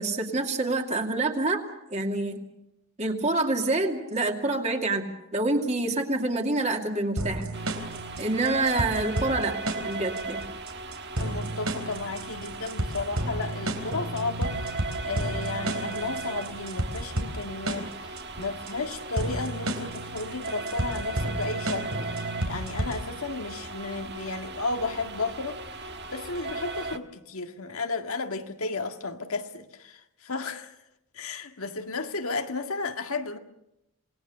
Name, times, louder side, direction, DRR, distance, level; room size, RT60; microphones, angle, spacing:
voice 1, 0.0-1.6 1.9-2.4 3.0-5.0 5.3-7.5 8.2-9.6 9.8-10.5, right 2 dB, 30° right, 2.4 m, -27 dB
sound 1, 7.2-23.2, right 1 dB, 85° right, 3.8 m, -32 dB
sound 2, 7.5-27.0, right 3 dB, 50° right, 1.4 m, -37 dB
voice 2, 11.2-14.7 15.0-30.7 31.1-33.4, left 3 dB, 80° left, 1.8 m, -33 dB
27.5 x 19.0 x 6.8 m
head